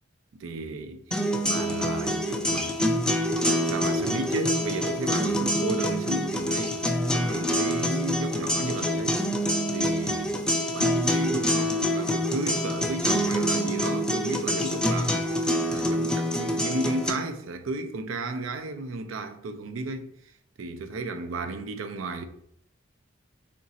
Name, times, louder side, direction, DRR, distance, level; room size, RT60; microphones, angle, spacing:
voice 1, 0.4-2.8 3.6-6.8 7.1-9.2 9.7-10.3 10.7-20.1 20.6-22.2, right 2 dB, 90° right, 0.4 m, -33 dB
sound 1, 1.1-17.1, equal, 5° left, 0.3 m, -26 dB
3.7 x 2.6 x 4.1 m
head